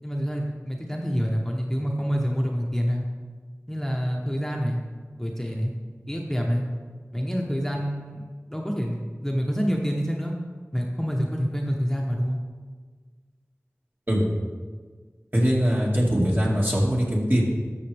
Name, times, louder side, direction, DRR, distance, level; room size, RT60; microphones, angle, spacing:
voice 1, 0.0-3.1 3.7-4.8 5.2-5.7 6.1-6.6 7.1-10.3 10.7-12.4, equal, 5° left, -1 dB, 0.9 m, -27 dB
voice 2, 15.3-17.4, equal, 40° right, -4 dB, 2.1 m, -22 dB
13.0 x 6.3 x 3.4 m, 1.5 s
wide cardioid pair, 45°, 5 cm